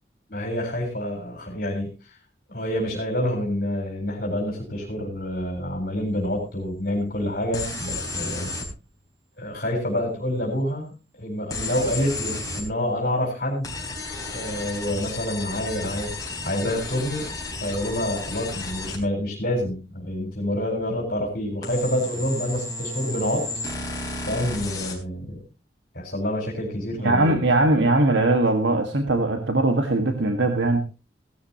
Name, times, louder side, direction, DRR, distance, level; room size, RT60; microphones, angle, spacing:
voice 1, 0.3-2.2 2.5-8.5 9.4-10.9 11.2-13.7 14.3-16.1 16.4-17.3 17.6-23.5 24.3-25.4 25.9-27.4, left 1 dB, 50° left, 0 dB, 4.3 m, -27 dB
sound 1, 7.5-8.7 11.5-12.7 13.6-19.0 21.6-24.9, left 2 dB, 20° left, 4.1 m, -33 dB
voice 2, 27.0-30.8, right 2 dB, 80° right, 5 dB, 1.7 m, -20 dB
17.0 x 13.0 x 2.9 m, 0.32 s
head